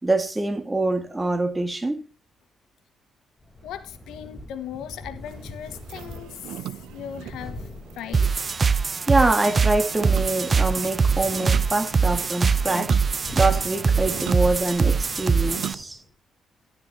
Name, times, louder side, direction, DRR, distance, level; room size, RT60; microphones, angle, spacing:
voice 1, 0.0-2.1 9.1-13.0 13.3-16.0, right 2 dB, 15° right, 2.0 m, -24 dB
sound 1, 3.4-16.1, left 1 dB, 15° left, 3.8 m, -43 dB
voice 2, 3.6-7.7 7.9-8.3, left 10 dB, 85° left, 1.5 m, -38 dB
sound 2, 5.2-15.8, right 13 dB, 85° right, 0.6 m, -39 dB
sound 3, 8.1-15.7, right 5 dB, 35° right, 0.6 m, -23 dB
12.0 x 12.0 x 2.9 m
cardioid pair, 90°, 0 cm